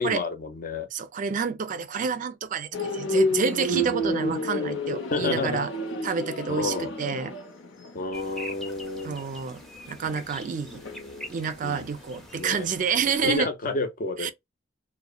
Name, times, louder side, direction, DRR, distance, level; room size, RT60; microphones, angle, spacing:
voice 1, 0.0-0.9 3.7-4.0 5.1-5.6 6.5-6.9 7.9-9.2 10.7-11.3 11.6-11.9 12.3-12.7 13.1-14.3, left 3 dB, 45° left, 0.5 m, -30 dB
voice 2, 0.9-5.7 6.0-7.3 9.0-9.6 9.9-10.8 11.3-13.5 14.2-14.3, right 6 dB, 40° right, 0.3 m, -29 dB
sound 1, 2.7-11.8 12.1-12.4, left 1 dB, 90° left, 0.7 m, -30 dB
sound 2, 8.1-13.4, equal, ahead, 0.6 m, -44 dB
2.8 x 2.1 x 2.2 m
head